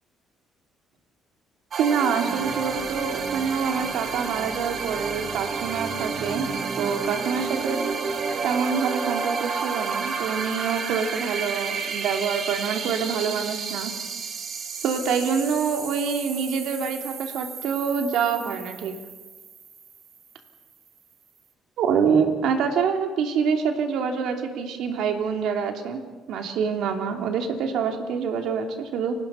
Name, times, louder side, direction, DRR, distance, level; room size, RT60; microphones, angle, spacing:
sound 1, 1.7-20.2, right 5 dB, 50° right, 2.3 m, -31 dB
voice 1, 1.8-6.5 6.8-7.8 8.4-13.9 14.8-18.9 21.8-26.0 26.3-29.1, right 6 dB, 75° right, 4 dB, 2.9 m, -26 dB
30.0 x 18.5 x 5.7 m, 1.3 s
cardioid pair, 100°, 0 cm